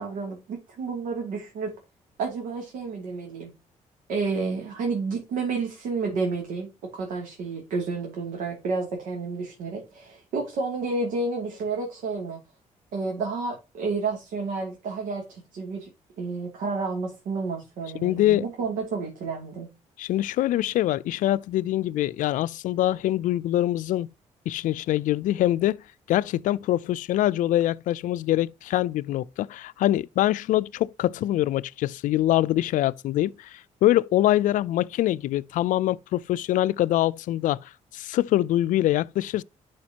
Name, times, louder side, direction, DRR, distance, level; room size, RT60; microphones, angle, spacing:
voice 1, 0.0-1.7 2.2-3.5 4.1-12.4 12.9-15.9 16.2-19.7, right 4 dB, 85° right, 2.7 m, -30 dB
voice 2, 18.0-18.4 20.0-24.1 24.5-25.8 26.1-37.6 37.9-39.4, left 14 dB, 80° left, 0.4 m, -24 dB
11.5 x 5.1 x 2.9 m
cardioid pair, 95°, 13 cm